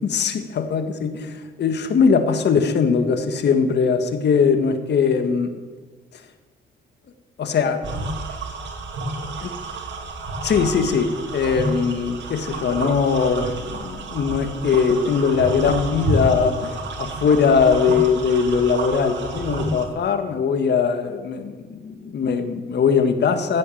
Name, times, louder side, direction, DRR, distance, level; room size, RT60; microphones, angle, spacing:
voice 1, 0.0-5.5 7.4-8.1 9.4-9.5 10.4-11.1 11.3-23.6, left 6 dB, 60° left, 8 dB, 1.7 m, -20 dB
sound 1, 7.8-19.9, right 2 dB, 65° right, 2.3 m, -30 dB
16.0 x 8.5 x 7.1 m, 1.4 s
cardioid pair, 90°, 20 cm